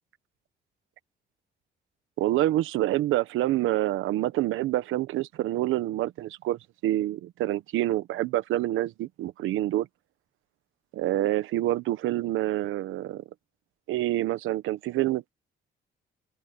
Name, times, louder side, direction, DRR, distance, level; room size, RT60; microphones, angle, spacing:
voice 1, 2.2-9.9 10.9-13.2 13.9-15.3, right 15 dB, 90° right, 1.2 m, -27 dB
open air
cardioid pair, 90°, 20 cm